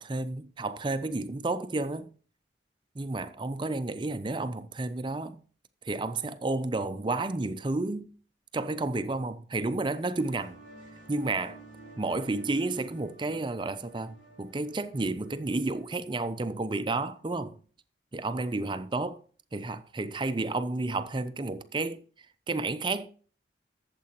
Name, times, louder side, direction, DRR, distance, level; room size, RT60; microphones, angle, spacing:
voice 1, 0.0-2.1 3.0-5.4 5.8-8.1 8.5-10.6 11.1-11.6 12.0-17.6 18.1-19.2 19.5-22.0 22.5-23.1, right 2 dB, 25° right, 0.5 m, -31 dB
sound 1, 9.8-17.2, right 2 dB, 85° left, 3.2 m, -53 dB
12.5 x 7.6 x 2.9 m
head